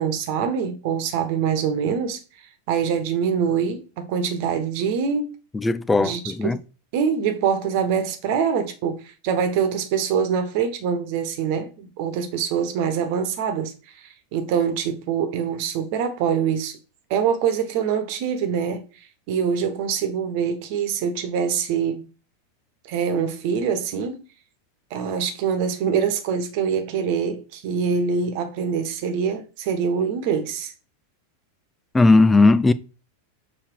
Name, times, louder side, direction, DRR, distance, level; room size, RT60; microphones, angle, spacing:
voice 1, 0.0-2.2 2.7-5.3 6.0-6.6 6.9-13.7 14.0-16.7 17.1-18.8 19.3-22.0 22.9-24.2 24.9-30.7, right 7 dB, 45° right, 1.4 m, -24 dB
voice 2, 5.5-6.6 31.9-32.7, left 3 dB, 10° left, 0.6 m, -17 dB
7.0 x 4.2 x 4.6 m
figure-of-eight pair, 90°, 0 cm